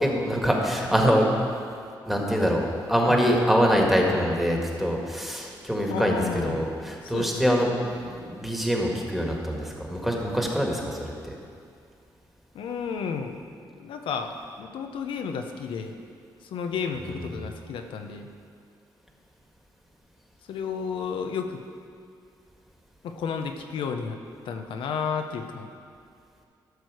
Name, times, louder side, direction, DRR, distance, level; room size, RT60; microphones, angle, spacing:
voice 1, 0.0-1.4 2.1-11.4 17.0-17.1, equal, 5° right, 0 dB, 1.7 m, -24 dB
voice 2, 5.9-6.7 7.0-7.6 12.5-13.4 13.8-16.0 16.4-18.3 20.5-21.6 23.0-24.2 24.4-25.7, left 6 dB, 80° left, 5 dB, 0.8 m, -32 dB
13.0 x 6.4 x 4.8 m, 2.3 s
cardioid pair, 75°, 9 cm